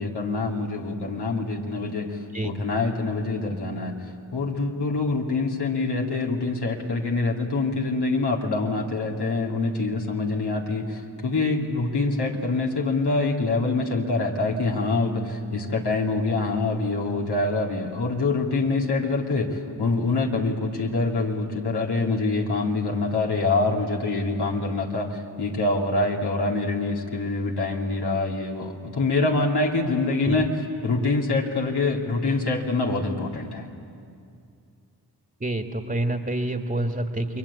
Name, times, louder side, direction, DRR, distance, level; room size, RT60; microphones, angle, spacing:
voice 1, 0.0-2.2 2.4-3.9 4.3-30.5 30.8-33.7, left 3 dB, 75° left, -1 dB, 2.8 m, -25 dB
voice 2, 35.4-37.4, right 1 dB, 25° right, 5 dB, 2.0 m, -27 dB
29.0 x 22.0 x 8.5 m, 2.4 s
cardioid pair, 40°, 40 cm